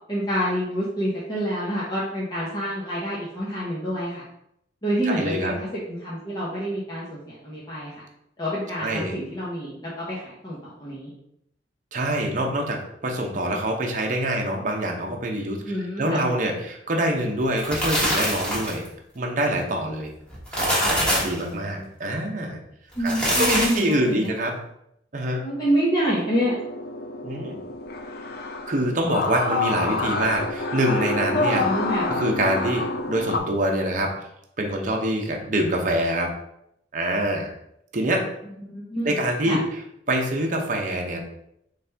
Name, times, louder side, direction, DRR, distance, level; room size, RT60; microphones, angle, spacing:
voice 1, 0.1-4.2 4.8-7.9 8.4-11.1 15.6-16.3 21.7-21.9 22.9-24.3 25.4-26.5 31.6-32.2 38.6-39.2 39.4-39.6, equal, 25° left, -7 dB, 1.0 m, -27 dB
voice 2, 5.0-5.5 8.8-9.1 11.9-15.6 16.0-18.8 19.1-20.1 20.5-22.6 23.0-24.5 25.1-25.4 27.2-27.6 28.7-31.6 32.1-34.1 34.6-36.3 36.9-37.5 37.9-38.3 39.0-39.6 40.1-41.2, right 1 dB, 45° right, 1 dB, 0.8 m, -25 dB
sound 1, 17.4-18.9 20.3-21.4 22.9-23.9, equal, 5° left, 1.3 m, -24 dB
sound 2, 26.3-33.4, left 3 dB, 60° left, 0.5 m, -28 dB
4.2 x 3.3 x 3.4 m, 0.76 s
head